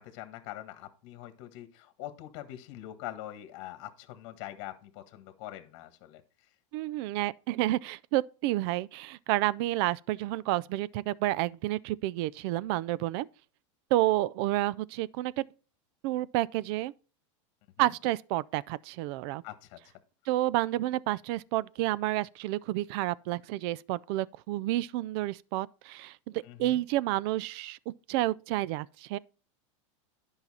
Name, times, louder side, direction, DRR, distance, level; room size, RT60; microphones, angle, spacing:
voice 1, 0.0-6.5 17.8-17.9 19.4-19.9 26.4-26.8, left 14 dB, 50° left, 1.5 m, -44 dB
voice 2, 6.7-13.3 13.9-15.4 16.0-16.9 17.8-19.4 20.3-27.8 28.1-29.2, right 16 dB, 50° right, 0.4 m, -30 dB
10.5 x 5.7 x 4.2 m
supercardioid pair, 140°, 16 cm